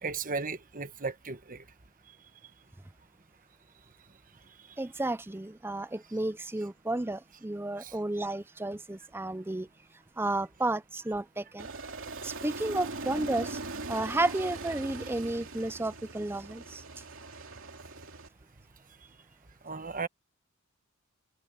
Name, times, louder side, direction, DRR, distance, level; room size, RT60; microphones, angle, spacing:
voice 1, 0.0-1.6 2.1-2.2 2.4-2.5 4.6-4.8 7.8-8.0 19.6-20.1, right 4 dB, 40° right, 1.2 m, -36 dB
voice 2, 4.8-9.7 10.2-11.7 12.2-13.6 13.9-16.8, right 2 dB, 10° right, 0.5 m, -32 dB
Aircraft, 11.6-18.3, right 3 dB, 60° right, 3.0 m, -41 dB
head